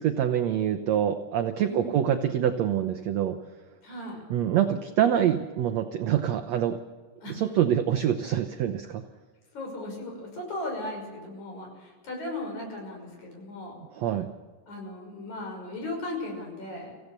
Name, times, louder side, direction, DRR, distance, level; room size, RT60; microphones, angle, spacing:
voice 1, 0.0-3.4 4.3-6.8 7.3-9.0 13.9-14.3, right 10 dB, 80° right, 8 dB, 1.5 m, -25 dB
voice 2, 1.6-2.0 3.8-4.3 7.2-7.4 9.5-13.8 14.7-16.9, left 1 dB, 50° left, 0 dB, 7.2 m, -37 dB
25.5 x 16.5 x 6.8 m, 1.4 s
omnidirectional pair, 4.2 m